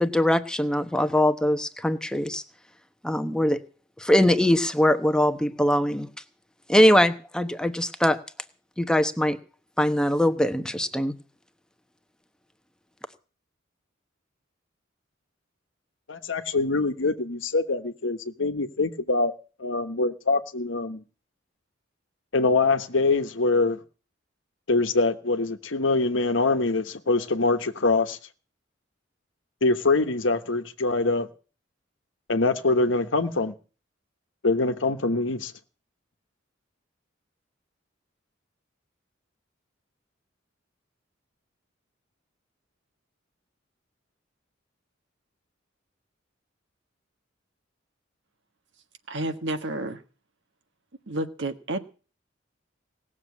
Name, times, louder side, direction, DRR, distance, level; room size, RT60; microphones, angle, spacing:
voice 1, 0.0-2.4 3.0-3.6 4.0-6.1 6.7-8.2 8.8-9.4 9.8-11.1, left 1 dB, 5° left, 1.0 m, -22 dB
voice 2, 16.1-19.3 19.6-21.0 22.3-23.8 24.7-28.2 29.6-31.3 32.3-33.5 34.4-35.5, left 3 dB, 75° left, 1.2 m, -24 dB
voice 3, 49.1-50.0 51.1-51.8, right 1 dB, 65° right, 1.5 m, -30 dB
18.0 x 7.3 x 8.4 m
head